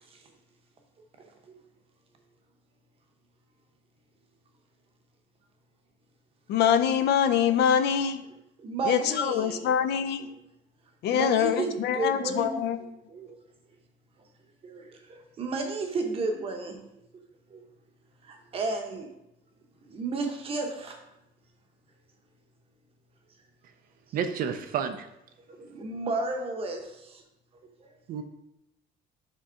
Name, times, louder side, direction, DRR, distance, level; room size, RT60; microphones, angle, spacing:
voice 1, 6.5-8.2 8.9-10.3 11.0-12.8, left 8 dB, 65° left, 10 dB, 0.5 m, -24 dB
voice 2, 8.6-9.7 11.1-12.5 13.1-13.4 14.6-16.8 17.5-17.6 18.2-19.1 19.9-21.0 25.6-27.2, right 3 dB, 30° right, 4 dB, 0.8 m, -32 dB
voice 3, 24.1-25.1 28.1-28.2, right 7 dB, 50° right, 8 dB, 0.4 m, -30 dB
5.1 x 3.5 x 5.5 m, 0.85 s
cardioid pair, 180°, 19 cm